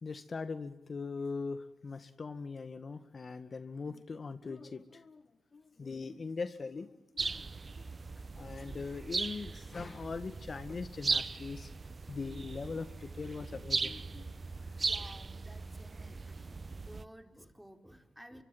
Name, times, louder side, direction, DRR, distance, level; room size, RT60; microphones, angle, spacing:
voice 1, 0.0-5.2 5.5-7.9 8.3-14.4, left 4 dB, 45° left, 11 dB, 1.8 m, -41 dB
sound 1, 7.2-17.0, right 4 dB, 40° right, 1.1 m, -38 dB
voice 2, 14.6-18.4, equal, 5° right, 7 dB, 4.3 m, -54 dB
25.0 x 23.5 x 9.2 m, 0.91 s
supercardioid pair, 55°, 0 cm